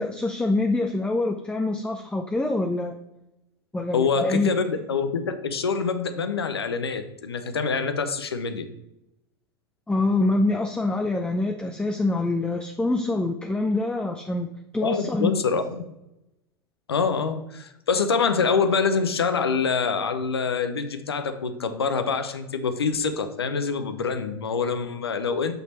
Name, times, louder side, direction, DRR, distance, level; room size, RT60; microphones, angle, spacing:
voice 1, 0.0-3.0 3.7-4.7 9.9-14.5 14.7-15.3, left 2 dB, 5° left, 4 dB, 0.6 m, -25 dB
voice 2, 3.9-8.7 14.8-15.9 16.9-25.5, left 5 dB, 85° left, 9 dB, 0.7 m, -25 dB
6.2 x 5.4 x 4.3 m, 0.88 s
hypercardioid pair, 85°, 13 cm